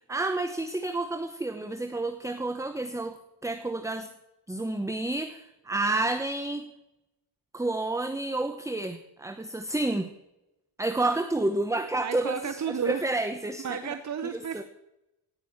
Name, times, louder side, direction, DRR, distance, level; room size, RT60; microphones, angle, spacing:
voice 1, 0.1-4.1 4.5-6.7 7.5-10.1 10.8-14.0 14.3-14.6, right 2 dB, 5° right, 8 dB, 0.9 m, -30 dB
voice 2, 12.0-13.0 13.6-14.6, right 7 dB, 40° right, 9 dB, 0.8 m, -32 dB
17.0 x 6.3 x 8.6 m, 0.92 s
cardioid pair, 110°, 46 cm